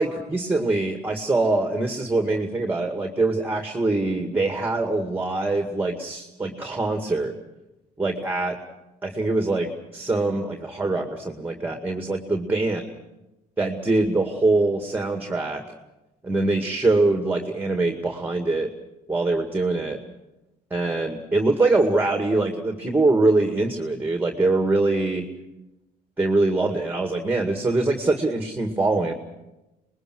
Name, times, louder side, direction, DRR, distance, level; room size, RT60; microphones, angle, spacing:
voice 1, 0.0-7.3 8.0-8.6 9.0-12.8 13.6-15.6 16.2-18.7 19.1-20.0 20.7-25.3 26.2-29.1, right 2 dB, 10° right, 5 dB, 2.1 m, -23 dB
26.5 x 21.0 x 6.3 m, 0.96 s
cardioid pair, 110°, 17 cm